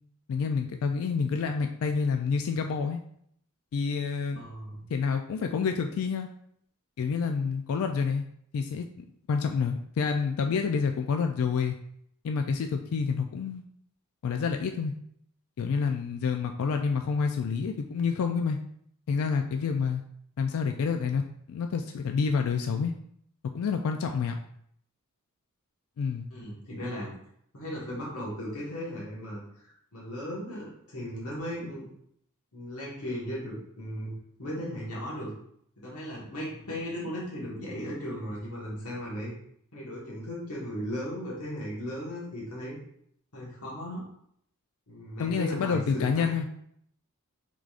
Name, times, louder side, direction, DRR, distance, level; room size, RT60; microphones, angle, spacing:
voice 1, 0.3-3.0 3.7-4.4 4.9-6.3 7.0-8.2 8.5-11.8 12.2-13.6 14.2-14.9 15.6-18.6 19.1-20.0 20.4-21.2 21.5-22.9 23.5-24.4 26.0-26.3 45.2-46.5, left 5 dB, 65° left, 5 dB, 0.3 m, -28 dB
voice 2, 4.3-4.8 26.3-27.1 27.5-31.9 32.5-34.1 34.4-35.3 35.8-39.3 39.7-42.8 43.3-44.0 44.9-46.3, equal, 85° left, -5 dB, 1.4 m, -36 dB
4.8 x 3.7 x 2.4 m, 0.69 s
head